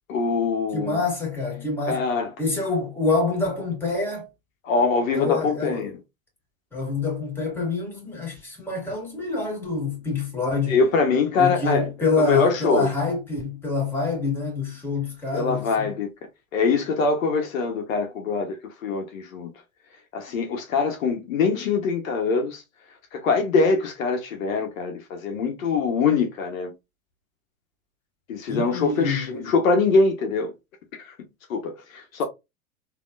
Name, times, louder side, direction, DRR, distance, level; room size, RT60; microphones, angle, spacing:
voice 1, 0.1-1.0 1.9-2.3 4.6-5.9 10.7-11.9 12.1-12.9 15.3-16.1 16.5-18.6 18.8-19.5 20.1-22.6 23.1-26.7 28.3-30.5 31.0-31.1 31.5-32.2, left 4 dB, 70° left, 1.1 m, -23 dB
voice 2, 0.7-2.0 2.4-4.3 5.1-5.9 6.7-10.8 11.4-15.9 28.5-29.5, left 3 dB, 5° left, 2.0 m, -26 dB
3.5 x 2.9 x 2.4 m
hypercardioid pair, 105°, 41 cm